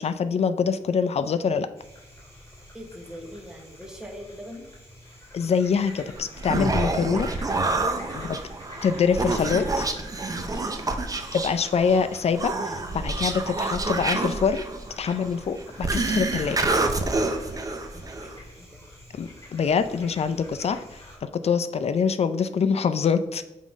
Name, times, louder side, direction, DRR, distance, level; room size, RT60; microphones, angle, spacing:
voice 1, 0.0-1.7 5.3-7.3 8.1-8.4 8.8-9.9 11.3-14.6 15.0-16.7 19.1-23.4, left 6 dB, 55° left, 10 dB, 0.5 m, -25 dB
sound 1, 1.8-21.2, left 1 dB, 25° left, 2.5 m, -47 dB
voice 2, 2.7-4.7 8.0-8.2 10.3-10.8 17.9-18.7, equal, 5° right, 1 dB, 1.1 m, -42 dB
Human voice, 6.2-18.4, right 3 dB, 30° right, 0.6 m, -28 dB
7.3 x 3.7 x 5.1 m, 0.99 s
wide cardioid pair, 145°, 12 cm